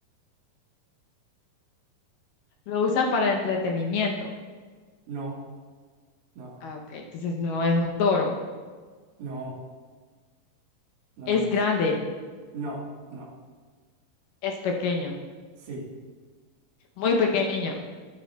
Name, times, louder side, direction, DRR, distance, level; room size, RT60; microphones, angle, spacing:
voice 1, 2.7-4.3 6.6-8.3 11.3-12.0 14.4-15.2 17.0-17.7, left 4 dB, 75° left, 1 dB, 2.3 m, -25 dB
voice 2, 5.1-5.4 6.4-6.6 9.2-9.6 11.2-11.5 12.5-12.8 13.1-13.3 15.6-15.8, right 3 dB, 75° right, -2 dB, 3.3 m, -36 dB
11.5 x 10.0 x 2.3 m, 1.5 s
omnidirectional pair, 4.2 m